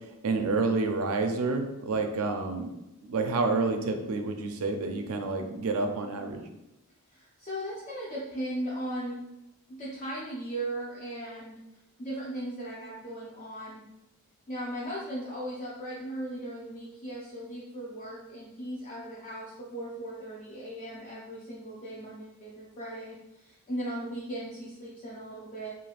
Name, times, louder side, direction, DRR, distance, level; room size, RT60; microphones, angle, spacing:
voice 1, 0.2-2.7 3.0-6.4, right 3 dB, 70° right, 5 dB, 0.4 m, -29 dB
voice 2, 7.1-9.2 9.7-11.5 12.0-13.8 14.5-25.7, right 1 dB, 30° left, -6 dB, 0.4 m, -37 dB
3.3 x 2.3 x 2.3 m, 0.92 s
head